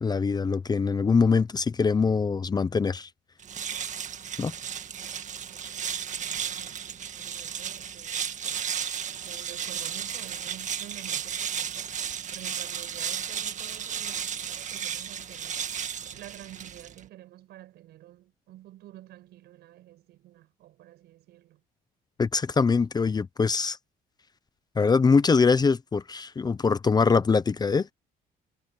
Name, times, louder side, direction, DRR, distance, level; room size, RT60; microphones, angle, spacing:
voice 1, 0.0-3.1 4.4-4.5 22.2-23.8 24.8-27.9, left 5 dB, 25° left, 0.8 m, -23 dB
sound 1, 3.4-17.1, right 8 dB, 45° right, 1.8 m, -34 dB
voice 2, 5.0-8.7 9.2-15.7 16.0-21.6, right 14 dB, 75° right, 7.9 m, -50 dB
cardioid pair, 110°, 17 cm